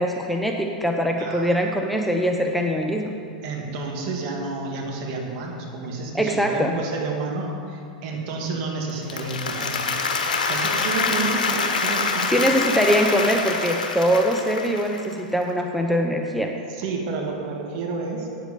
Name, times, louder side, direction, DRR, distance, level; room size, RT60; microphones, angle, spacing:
voice 1, 0.0-3.1 6.1-6.8 12.3-16.5, equal, ahead, 2 dB, 0.8 m, -22 dB
voice 2, 1.2-1.6 3.4-9.8 10.4-12.5 16.7-18.3, right 3 dB, 50° right, 0 dB, 2.2 m, -30 dB
Applause, 8.9-15.1, left 4 dB, 80° left, 1.1 m, -25 dB
9.0 x 7.9 x 6.9 m, 2.5 s
hypercardioid pair, 100°, 4 cm